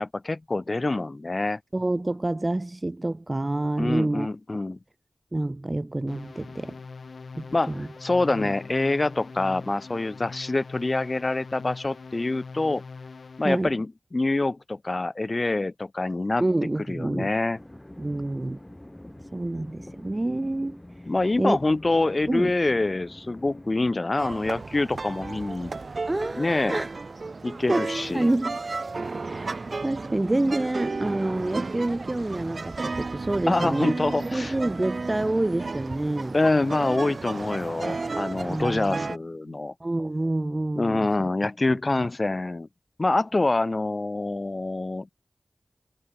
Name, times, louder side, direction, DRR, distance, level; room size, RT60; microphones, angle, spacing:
voice 1, 0.0-1.6 3.8-4.8 7.5-12.8 13.4-16.4 16.9-17.6 21.1-25.7 26.4-26.8 27.4-28.3 33.5-34.5 36.3-39.7 40.8-42.7 43.0-45.1, left 2 dB, 45° left, 0.7 m, -26 dB
voice 2, 1.7-4.3 5.3-6.8 7.3-7.9 8.3-8.5 13.4-13.8 16.4-17.3 18.0-18.6 19.3-20.8 21.4-21.6 22.3-22.5 26.1-26.9 27.7-28.6 29.2-33.9 34.3-36.4 38.5-39.1 39.5-41.3 41.7-42.1, right 2 dB, 30° right, 0.8 m, -28 dB
sound 1, 6.1-13.6, left 4 dB, 80° left, 1.9 m, -42 dB
sound 2, 17.5-24.0, left 1 dB, 20° left, 4.0 m, -45 dB
sound 3, 24.2-39.2, right 3 dB, 65° right, 0.4 m, -33 dB
cardioid pair, 45°, 0 cm